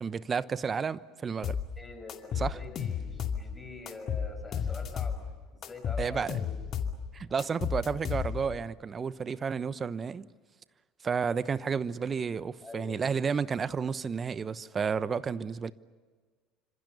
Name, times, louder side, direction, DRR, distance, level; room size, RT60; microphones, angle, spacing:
voice 1, 0.0-1.6 2.4-2.6 6.0-6.4 7.1-10.3 11.0-15.7, right 6 dB, 30° right, 1.0 m, -31 dB
sound 1, 1.4-1.7 2.1-3.5 3.9-5.2 5.6-7.0 7.4-8.6, left 7 dB, 45° left, 2.5 m, -32 dB
voice 2, 1.8-5.2 5.5-6.5 12.6-13.1, left 2 dB, 15° left, 7.3 m, -45 dB
28.0 x 26.0 x 6.9 m
hypercardioid pair, 70°, 0 cm